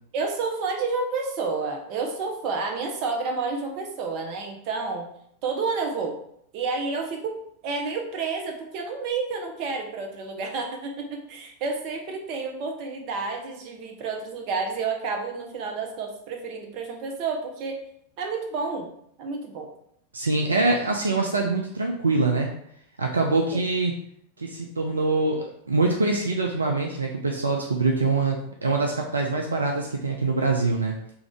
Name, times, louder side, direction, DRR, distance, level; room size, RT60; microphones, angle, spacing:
voice 1, 0.1-5.1 5.4-6.2 6.5-7.3 7.6-17.8 18.2-18.9 19.2-19.7 23.5-23.6, right 4 dB, 45° right, 2 dB, 0.7 m, -30 dB
voice 2, 20.1-22.5 23.0-23.9 24.4-31.0, right 3 dB, 75° right, 1 dB, 0.4 m, -24 dB
3.4 x 2.5 x 3.4 m, 0.70 s
figure-of-eight pair, 90°, 0 cm